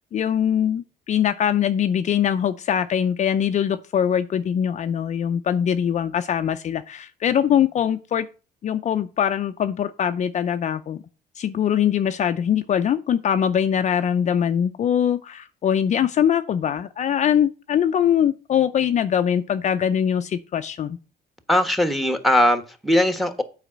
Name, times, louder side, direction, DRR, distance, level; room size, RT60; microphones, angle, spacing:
voice 1, 0.1-8.3 8.6-11.0 11.4-21.0, left 9 dB, 45° left, 0.6 m, -22 dB
voice 2, 21.5-23.4, left 1 dB, ahead, 1.3 m, -20 dB
8.2 x 4.9 x 7.3 m
cardioid pair, 110°, 17 cm